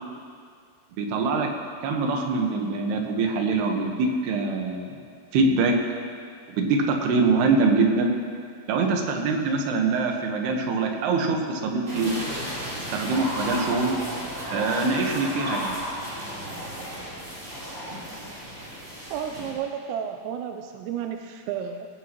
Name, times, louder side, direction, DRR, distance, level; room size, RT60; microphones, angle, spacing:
voice 1, 1.0-1.5 1.8-4.9 5.3-5.7 6.6-8.1 8.7-12.1 12.9-14.0 14.5-15.8, right 3 dB, 65° right, 2 dB, 3.0 m, -24 dB
sound 1, 11.9-19.5, equal, 15° right, 3.4 m, -33 dB
voice 2, 19.1-21.9, right 8 dB, 85° right, 5 dB, 2.5 m, -32 dB
19.5 x 17.5 x 3.1 m, 2.1 s
omnidirectional pair, 5.7 m